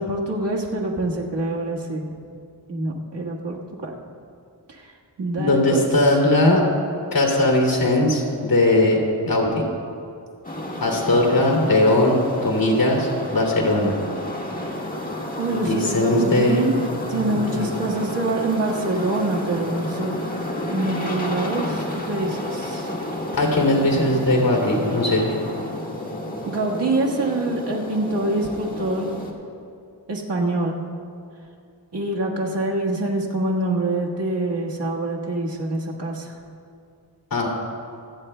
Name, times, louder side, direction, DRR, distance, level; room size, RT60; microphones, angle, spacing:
voice 1, 0.0-2.1 2.7-4.0 4.7-4.9 5.2-6.1 15.4-16.8 17.1-20.2 20.7-22.9 26.4-29.2 30.1-30.8 31.9-36.3, right 2 dB, 75° right, -2 dB, 1.6 m, -25 dB
voice 2, 5.4-6.6 7.1-9.0 9.3-9.6 10.8-13.9 15.7-16.7 17.1-17.7 23.3-25.3 37.3-37.5, left 1 dB, 55° left, -1 dB, 2.7 m, -19 dB
sound 1, 10.4-29.3, left 1 dB, 20° left, 1.6 m, -31 dB
26.5 x 9.3 x 2.2 m, 2.4 s
wide cardioid pair, 70°, 42 cm